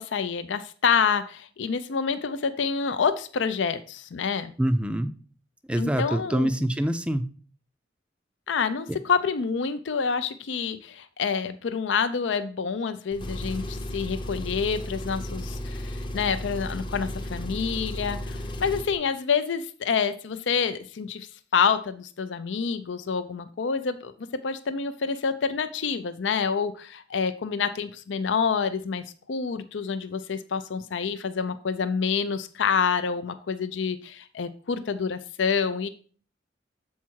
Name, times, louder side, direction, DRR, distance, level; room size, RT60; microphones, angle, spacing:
voice 1, 0.0-4.5 5.8-6.5 8.5-21.3 21.5-35.9, left 6 dB, 75° left, 11 dB, 0.5 m, -27 dB
voice 2, 4.6-5.1 5.7-7.2 8.9-9.0, right 1 dB, 5° right, 10 dB, 0.4 m, -25 dB
Engine, 13.1-19.0, left 1 dB, 25° left, 0.7 m, -34 dB
7.3 x 4.6 x 4.5 m, 0.42 s
head